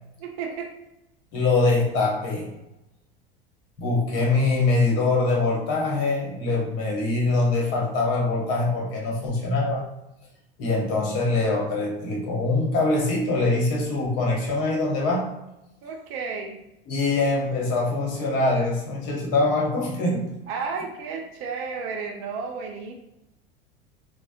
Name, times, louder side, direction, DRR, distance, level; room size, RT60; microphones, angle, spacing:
voice 1, 0.2-0.7 1.3-1.5 15.8-16.6 20.5-22.9, right 5 dB, 45° right, 3 dB, 0.5 m, -32 dB
voice 2, 1.3-2.5 3.8-9.8 10.6-15.3 16.9-20.3, left 2 dB, 50° left, -2 dB, 1.0 m, -23 dB
3.3 x 2.0 x 2.5 m, 0.91 s
figure-of-eight pair, 75°, 29 cm